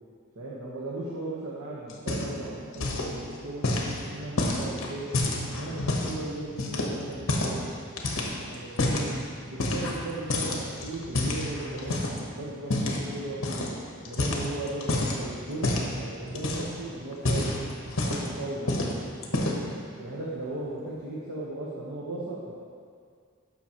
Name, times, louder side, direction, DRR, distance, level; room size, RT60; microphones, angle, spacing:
voice 1, 0.3-3.7 4.0-5.1 5.5-7.7 8.4-9.2 9.5-13.7 14.0-17.6 17.9-18.8 19.3-19.6 20.0-22.5, right 2 dB, 80° right, -6 dB, 1.1 m, -37 dB
sound 1, 1.9-2.5 2.7-3.1 3.6-6.2 6.6-7.6 8.0-9.1 9.6-10.0 10.3-12.2 12.7-13.0 13.4-13.7 14.0-15.2 15.6-15.9 16.3-16.8 17.1-18.3 18.7-18.9 19.2-19.7, left 2 dB, 65° left, 1.0 m, -28 dB
12.5 x 5.6 x 3.0 m, 2.2 s
head